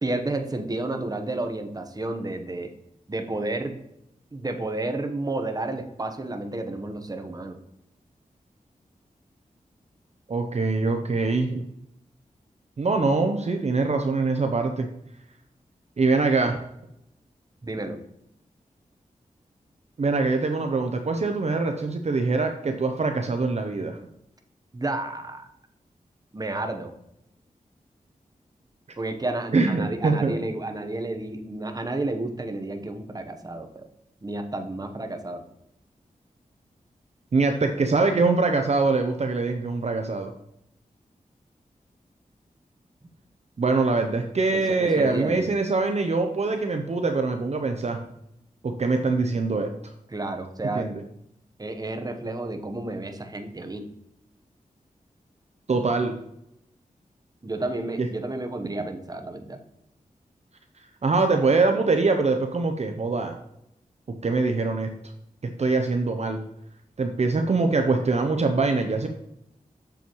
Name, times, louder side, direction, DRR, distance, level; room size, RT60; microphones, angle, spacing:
voice 1, 0.0-2.7 3.1-3.7 4.3-7.6 17.6-18.0 24.7-25.4 26.3-26.9 29.0-33.8 34.2-35.4 44.5-45.5 50.1-50.9 51.6-53.9 57.4-59.6, right 2 dB, 25° right, 6 dB, 1.0 m, -31 dB
voice 2, 10.3-11.6 12.8-14.9 16.0-16.6 20.0-24.0 29.5-30.4 37.3-40.3 43.6-48.0 48.6-49.7 50.7-51.0 55.7-56.1 58.0-58.1 61.0-63.3 64.2-64.9 65.6-66.4 67.0-69.1, right 3 dB, 50° right, 5 dB, 0.7 m, -23 dB
7.0 x 6.9 x 3.1 m, 0.81 s
wide cardioid pair, 70°, 14 cm